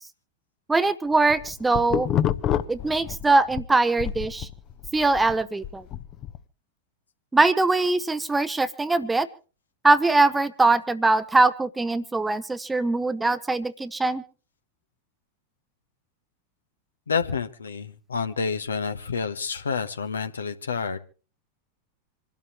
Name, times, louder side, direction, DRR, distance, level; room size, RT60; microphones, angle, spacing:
voice 1, 0.7-2.1 2.7-4.5 4.9-5.8 7.3-9.3 9.8-14.2, right 3 dB, 10° right, 14 dB, 0.8 m, -22 dB
sound 1, 1.1-3.7 4.0-6.4, left 10 dB, 35° left, 0.9 m, -28 dB
voice 2, 17.1-21.0, left 5 dB, 70° left, 10 dB, 1.1 m, -29 dB
27.0 x 12.5 x 3.0 m, 0.35 s
figure-of-eight pair, 90°, 0 cm